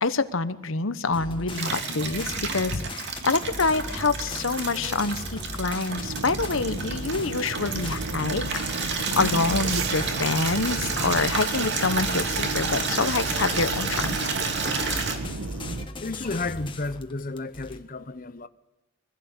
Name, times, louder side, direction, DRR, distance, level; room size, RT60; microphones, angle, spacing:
voice 1, 0.0-8.6 9.2-14.3, left 3 dB, 65° left, 1.1 m, -26 dB
sound 1, 1.1-17.8, left 2 dB, 25° left, 1.5 m, -38 dB
Water tap faucet / Liquid, 1.5-15.2, right 4 dB, 55° right, 2.9 m, -30 dB
sound 2, 5.9-15.9, right 3 dB, 70° right, 1.1 m, -35 dB
voice 2, 16.0-18.5, left 3 dB, 40° left, 0.8 m, -32 dB
24.0 x 16.0 x 8.1 m
head